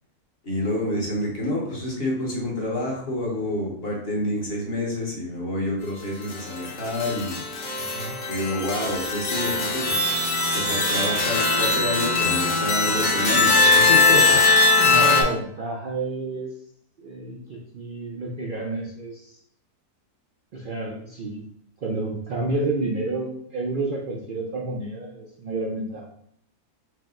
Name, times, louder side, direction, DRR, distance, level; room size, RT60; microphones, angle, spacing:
voice 1, 0.4-7.5 8.3-10.2 10.5-14.4, left 1 dB, 45° left, -2 dB, 1.1 m, -28 dB
sound 1, 6.3-15.2, left 3 dB, 90° left, 1.5 m, -21 dB
voice 2, 7.8-8.2 14.7-16.5 17.0-19.4 20.5-21.5 21.8-26.0, right 2 dB, 65° right, -1 dB, 0.5 m, -30 dB
4.8 x 2.1 x 3.7 m, 0.70 s
omnidirectional pair, 1.6 m